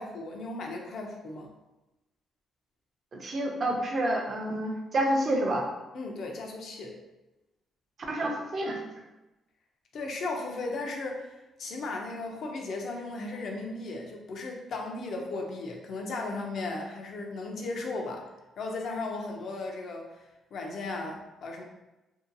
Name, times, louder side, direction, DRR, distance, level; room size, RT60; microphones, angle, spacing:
voice 1, 0.0-1.5 5.9-7.0 9.9-18.3 18.6-20.2 20.5-21.6, left 3 dB, 60° left, 1 dB, 0.5 m, -36 dB
voice 2, 3.2-5.6 8.1-8.8, right 1 dB, 45° right, 1 dB, 0.5 m, -28 dB
2.7 x 2.2 x 2.6 m, 1.0 s
cardioid pair, 90°, 0 cm